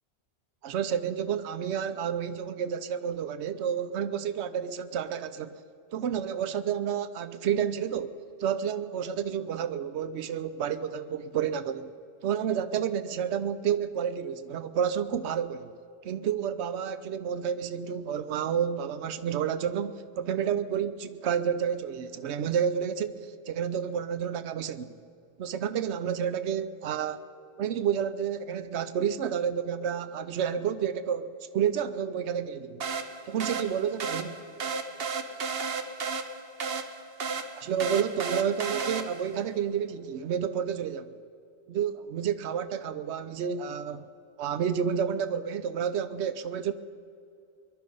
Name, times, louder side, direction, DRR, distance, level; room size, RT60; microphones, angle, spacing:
voice 1, 0.6-5.6 5.9-11.9 12.2-15.7 16.0-25.0 25.4-27.2 27.6-32.8 33.3-34.4 37.6-41.2 41.7-44.1 44.4-46.7, right 8 dB, 80° right, 0.9 m, -30 dB
sound 1, 32.8-39.4, right 4 dB, 60° right, 1.2 m, -34 dB
22.5 x 11.5 x 5.4 m
omnidirectional pair, 1.1 m